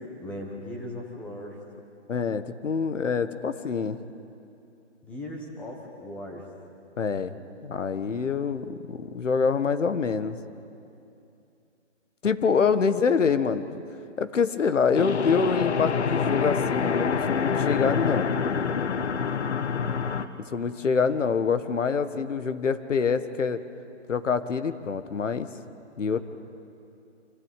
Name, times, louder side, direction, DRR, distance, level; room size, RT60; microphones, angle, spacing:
voice 1, 0.2-1.6 5.0-6.5 26.1-26.2, left 1 dB, 5° left, 0 dB, 1.0 m, -38 dB
voice 2, 2.1-4.0 7.0-7.3 7.6-10.4 12.2-13.8 14.2-18.3 20.5-23.6 24.1-25.5 26.0-26.2, left 5 dB, 85° left, 11 dB, 1.5 m, -25 dB
sound 1, 14.9-20.3, left 6 dB, 65° left, 1.3 m, -26 dB
26.0 x 15.5 x 9.1 m, 2.6 s
hypercardioid pair, 170°, 36 cm